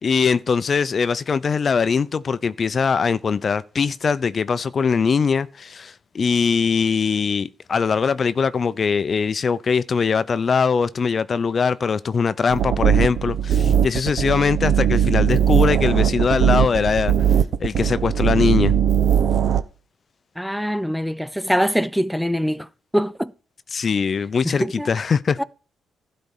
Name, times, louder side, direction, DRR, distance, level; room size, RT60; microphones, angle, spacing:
voice 1, 0.0-17.1 17.6-18.8 23.7-25.4, left 5 dB, 40° left, 0.5 m, -21 dB
sound 1, 12.5-19.6, right 8 dB, 65° right, 0.9 m, -19 dB
voice 2, 20.4-22.7 22.9-23.3 24.4-24.9 25.4-25.5, equal, ahead, 0.5 m, -23 dB
12.0 x 4.3 x 7.1 m
cardioid pair, 90°, 0 cm